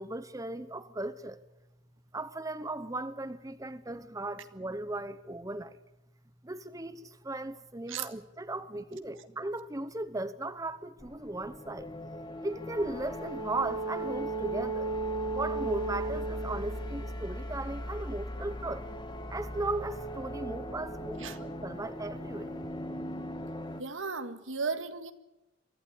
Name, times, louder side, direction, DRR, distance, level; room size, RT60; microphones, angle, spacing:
voice 1, 0.0-1.4 2.1-5.8 6.4-11.9 12.4-14.9 15.3-18.9 19.3-22.5, right 2 dB, 15° right, 0.9 m, -37 dB
sound 1, 11.0-23.8, right 1 dB, 25° left, 1.5 m, -37 dB
voice 2, 23.8-25.1, right 4 dB, 85° right, 1.8 m, -35 dB
24.0 x 15.5 x 10.0 m
head